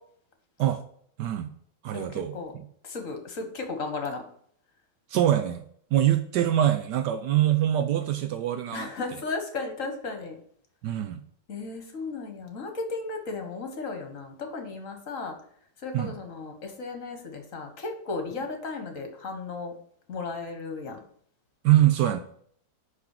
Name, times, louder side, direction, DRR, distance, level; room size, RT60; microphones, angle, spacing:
voice 1, 1.2-1.5 1.8-2.3 5.1-5.6 5.9-8.9 10.8-11.2 15.9-16.2 21.6-22.2, right 12 dB, 75° right, 8 dB, 1.2 m, -24 dB
voice 2, 1.9-2.5 2.8-4.2 8.7-10.4 11.5-15.4 15.8-19.7 20.1-21.0, left 3 dB, 50° left, 4 dB, 1.7 m, -35 dB
5.9 x 5.9 x 6.5 m, 0.62 s
omnidirectional pair, 1.9 m